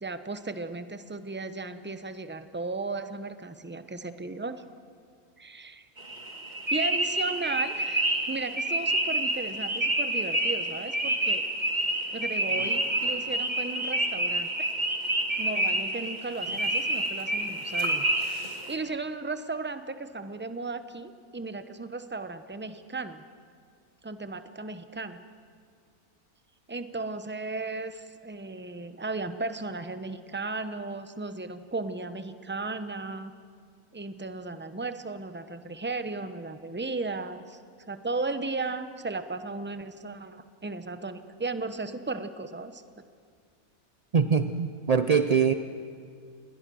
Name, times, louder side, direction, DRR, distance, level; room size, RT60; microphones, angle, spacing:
voice 1, 0.0-4.6 5.4-5.9 6.7-11.4 12.1-14.7 15.4-18.1 18.7-23.2 24.0-25.2 26.7-33.3 33.9-37.6 37.9-42.8, right 3 dB, 10° right, 10 dB, 0.6 m, -35 dB
sound 1, 6.0-18.8, right 1 dB, 30° right, 2.5 m, -28 dB
voice 2, 44.1-45.5, right 6 dB, 60° right, 9 dB, 0.4 m, -23 dB
28.5 x 20.5 x 6.3 m, 2.2 s
omnidirectional pair, 1.6 m